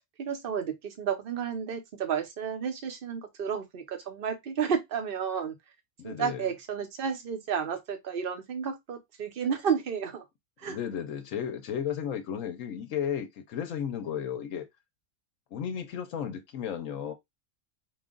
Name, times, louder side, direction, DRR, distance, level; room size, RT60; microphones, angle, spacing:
voice 1, 0.2-5.5 6.0-10.2 10.6-10.8, right 7 dB, 45° right, 0.9 m, -32 dB
voice 2, 6.0-6.5 10.6-14.7 15.5-17.1, left 8 dB, 70° left, 1.0 m, -34 dB
4.9 x 2.3 x 3.7 m
omnidirectional pair, 1.5 m